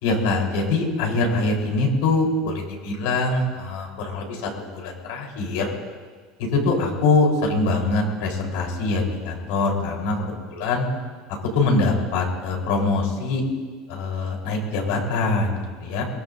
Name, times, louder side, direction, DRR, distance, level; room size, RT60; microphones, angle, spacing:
voice 1, 0.0-5.7 6.4-10.8 11.5-13.4 13.9-16.0, left 3 dB, 75° left, 0 dB, 4.0 m, -23 dB
22.0 x 20.5 x 2.7 m, 1.5 s
cardioid pair, 170°, 0 cm